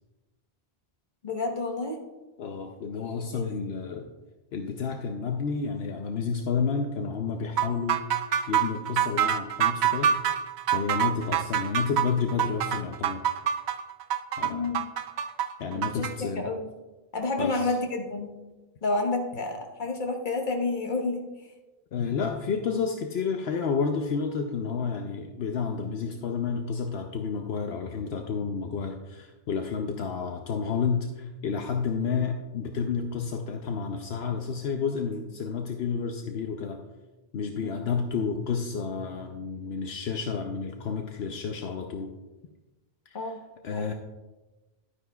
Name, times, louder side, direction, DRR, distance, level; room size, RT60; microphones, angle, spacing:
voice 1, 1.2-2.0 3.3-3.4 14.4-14.8 15.7-16.6 17.1-18.3 18.8-21.3 37.6-37.7 43.1-43.4 43.7-43.9, left 3 dB, 50° left, 2 dB, 1.3 m, -30 dB
voice 2, 2.4-4.1 4.5-8.1 8.5-10.1 10.7-13.2 14.4-14.7 15.6-16.5 17.4-17.7 21.9-36.8 37.3-42.1 43.1-43.4 43.6-43.9, left 5 dB, 75° left, 4 dB, 0.9 m, -30 dB
sound 1, 7.6-16.1, right 9 dB, 80° right, 0.9 m, -26 dB
11.5 x 9.8 x 2.3 m, 1.1 s
omnidirectional pair, 1.1 m